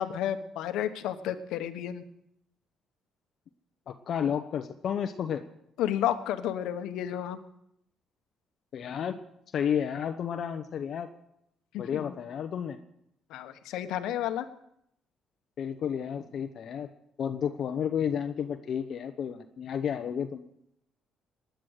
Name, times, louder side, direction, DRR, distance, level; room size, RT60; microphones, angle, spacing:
voice 1, 0.0-2.0 5.8-7.4 11.7-12.1 13.3-14.5, left 11 dB, 85° left, 9 dB, 1.3 m, -31 dB
voice 2, 3.9-5.4 8.7-9.2 9.5-11.1 11.8-12.8 15.6-16.9 17.2-20.4, left 8 dB, 60° left, 6 dB, 1.0 m, -31 dB
19.0 x 10.5 x 6.6 m, 0.77 s
cardioid pair, 100°, 0 cm